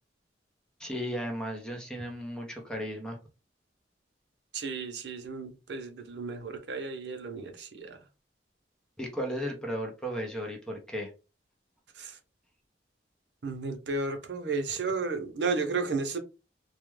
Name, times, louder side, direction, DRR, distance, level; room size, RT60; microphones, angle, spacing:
voice 1, 0.8-3.2 9.0-11.1, equal, 5° left, 0.6 m, -35 dB
voice 2, 4.5-8.0 11.9-12.2 13.4-16.2, right 4 dB, 80° right, 0.6 m, -33 dB
2.3 x 2.1 x 3.0 m
head